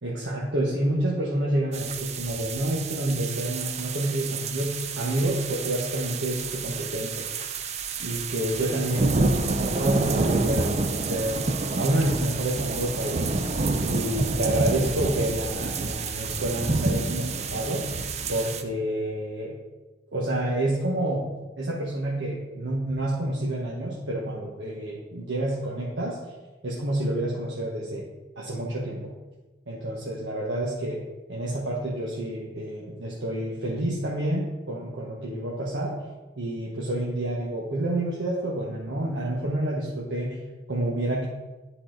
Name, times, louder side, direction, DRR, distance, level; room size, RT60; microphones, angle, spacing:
voice 1, 0.0-7.3 8.0-11.4 11.8-13.3 13.8-17.8 18.3-19.6 20.1-21.3 21.6-26.2 26.6-28.1 28.4-29.1 29.7-31.0 31.3-36.0 36.4-40.4 40.7-41.3, right 1 dB, 90° right, -4 dB, 1.1 m, -28 dB
sound 1, 1.7-18.6, right 3 dB, 35° right, 0.5 m, -28 dB
10.0 x 4.1 x 3.9 m, 1.2 s
head